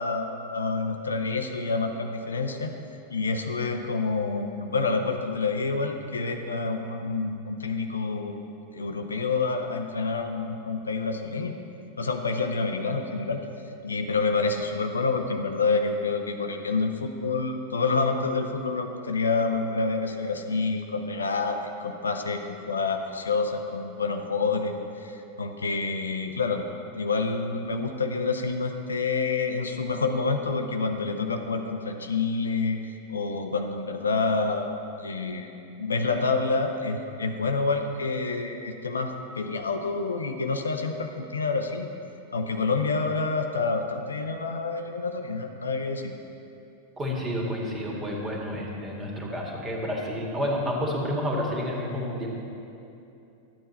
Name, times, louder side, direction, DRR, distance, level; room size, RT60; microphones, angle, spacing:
voice 1, 0.0-2.7 3.1-8.3 8.7-11.5 12.0-13.4 13.8-26.6 26.9-32.8 33.1-34.7 35.0-35.5 35.8-41.9 42.3-46.1, left 4 dB, 75° left, 5 dB, 0.7 m, -28 dB
voice 2, 47.0-52.3, equal, 20° right, -1 dB, 2.0 m, -30 dB
12.0 x 8.8 x 4.3 m, 2.7 s
figure-of-eight pair, 90°, 0 cm